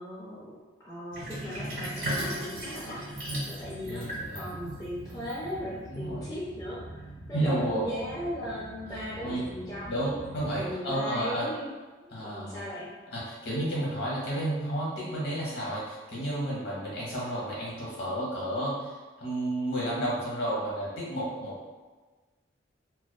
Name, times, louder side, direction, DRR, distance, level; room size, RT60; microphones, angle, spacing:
voice 1, 0.0-3.0 3.5-10.0 10.6-11.7 12.1-12.9, equal, 20° left, -9 dB, 0.4 m, -38 dB
Sink (filling or washing), 1.1-5.9, equal, 90° right, 1.0 m, -36 dB
sound 1, 3.6-10.8, right 1 dB, 70° right, 0.7 m, -46 dB
voice 2, 3.8-4.6 5.9-6.3 7.3-7.8 9.2-9.4 9.8-11.5 12.1-12.6 13.1-21.6, right 1 dB, 55° left, -6 dB, 0.9 m, -31 dB
2.5 x 2.2 x 2.2 m, 1.3 s
head